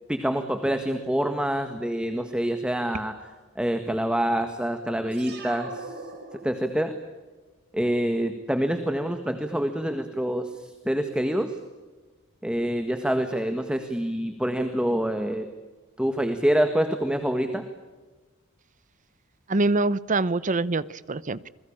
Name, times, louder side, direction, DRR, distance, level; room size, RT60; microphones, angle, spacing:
voice 1, 0.1-3.1 3.5-5.9 6.4-6.9 7.7-11.6 12.4-15.5 16.0-17.6, equal, 5° right, 1.7 m, -26 dB
sound 1, 5.1-7.0, right 3 dB, 50° right, 5.0 m, -41 dB
voice 2, 19.5-21.5, right 2 dB, 35° right, 0.8 m, -25 dB
28.0 x 21.5 x 8.8 m
head